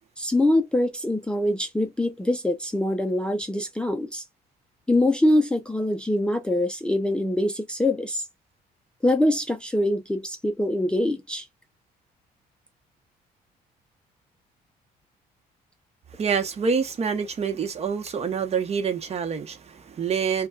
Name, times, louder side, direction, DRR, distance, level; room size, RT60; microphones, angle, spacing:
voice 1, 0.2-4.2 4.9-8.2 9.0-11.4, left 1 dB, 5° left, 0.5 m, -24 dB
voice 2, 16.1-20.5, right 6 dB, 40° right, 0.9 m, -26 dB
5.3 x 2.3 x 2.2 m
cardioid pair, 110°, 17 cm